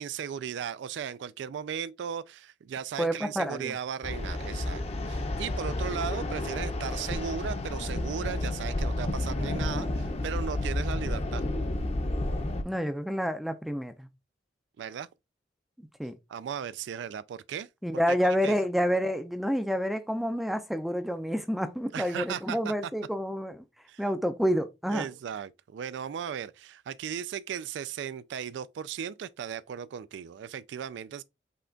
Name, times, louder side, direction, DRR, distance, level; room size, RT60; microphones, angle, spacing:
voice 1, 0.0-11.4 14.8-15.1 16.3-17.7 18.4-18.6 21.9-22.9 23.9-24.0 24.9-31.2, right 8 dB, 70° right, 0.3 m, -36 dB
voice 2, 3.0-3.7 12.6-14.1 16.0-16.2 17.8-23.6 24.0-25.1, equal, ahead, 0.4 m, -28 dB
sound 1, 4.0-12.6, left 1 dB, 35° left, 0.7 m, -31 dB
5.6 x 2.3 x 3.8 m
head